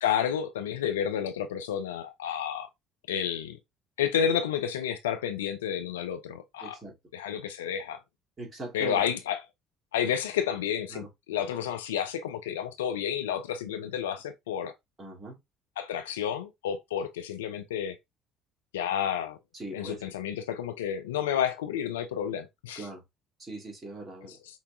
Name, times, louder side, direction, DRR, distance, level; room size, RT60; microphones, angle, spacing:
voice 1, 0.0-2.7 3.1-3.6 4.0-6.8 7.1-8.0 8.7-9.4 9.9-14.7 15.8-18.0 18.7-19.4 19.7-22.9 24.3-24.4, left 9 dB, 70° left, 0.4 m, -30 dB
voice 2, 6.6-6.9 8.4-9.1 10.9-11.1 15.0-15.4 19.5-20.0 22.7-23.0 23.4-24.4, right 2 dB, 30° right, 2.6 m, -40 dB
5.5 x 2.7 x 2.4 m
figure-of-eight pair, 55°, 0 cm